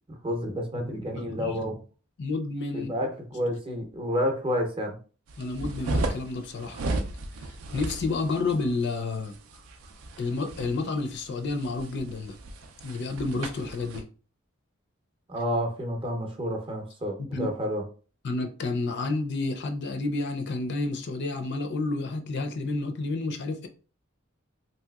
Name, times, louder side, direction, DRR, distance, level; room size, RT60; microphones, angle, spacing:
voice 1, 0.2-1.8 2.7-5.0 15.3-17.8, equal, 25° right, 0.6 m, -30 dB
voice 2, 1.1-1.6 2.2-2.9 5.4-6.8 7.7-9.3 10.2-12.3 12.8-14.1 17.3-17.5 18.2-23.7, left 3 dB, 55° left, 0.4 m, -30 dB
sound 1, 5.3-14.0, right 2 dB, 85° right, 0.4 m, -35 dB
3.1 x 2.8 x 2.3 m
head